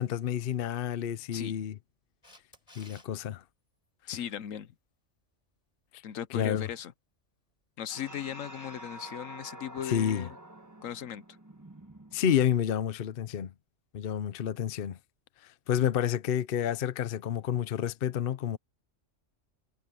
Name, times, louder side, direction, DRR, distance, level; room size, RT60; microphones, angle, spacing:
voice 1, 0.0-1.8 2.8-3.4 6.3-6.6 9.8-10.3 12.1-13.5 13.9-15.0 15.7-18.6, left 9 dB, 50° left, 0.8 m, -29 dB
Camera, 2.2-3.1 9.8-9.9, left 1 dB, 25° left, 5.5 m, -54 dB
voice 2, 4.1-4.7 6.0-6.9 7.8-10.3 10.8-11.2, left 10 dB, 80° left, 1.2 m, -37 dB
sound 1, 7.9-12.7, right 1 dB, 15° right, 1.3 m, -48 dB
omnidirectional pair, 1.4 m